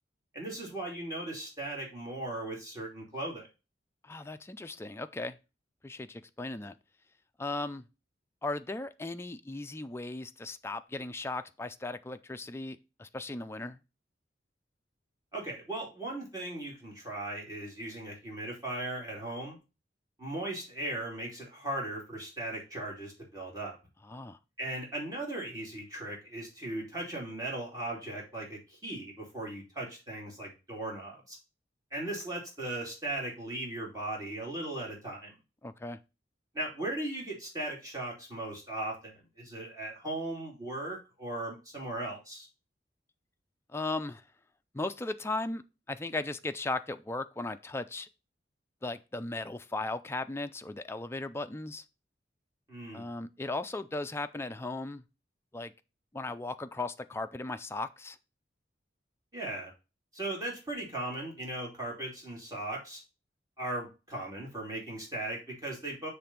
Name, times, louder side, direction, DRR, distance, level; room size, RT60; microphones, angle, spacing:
voice 1, 0.3-3.5 15.3-19.6 20.2-23.8 24.6-31.4 31.9-35.3 36.5-42.5 52.7-53.1 59.3-59.7 60.1-63.0 63.6-66.1, right 1 dB, 20° right, 2.7 m, -38 dB
voice 2, 4.0-5.4 5.8-6.8 7.4-7.8 8.4-13.8 24.0-24.4 35.6-36.0 43.7-44.2 44.7-45.6 45.9-48.1 48.8-51.8 52.9-55.0 55.5-55.7 56.1-58.2, left 2 dB, 15° left, 0.4 m, -37 dB
6.9 x 3.4 x 5.8 m
head